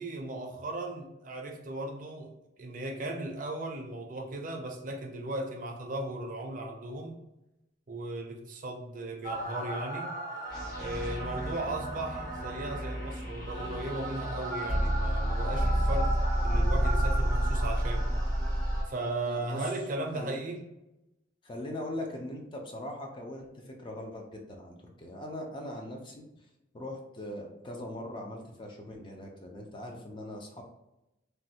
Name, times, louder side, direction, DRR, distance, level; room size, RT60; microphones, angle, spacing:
voice 1, 0.0-2.3 2.6-7.1 7.9-10.1 10.8-16.1 16.4-18.1 18.8-20.6, right 2 dB, 45° right, 1 dB, 0.5 m, -36 dB
sound 1, 9.2-18.8, right 1 dB, 50° left, 1.4 m, -30 dB
voice 2, 19.3-19.7 20.1-20.3 21.4-26.2 26.7-30.6, left 1 dB, 25° left, 1 dB, 0.4 m, -40 dB
3.1 x 2.2 x 2.7 m, 0.92 s
head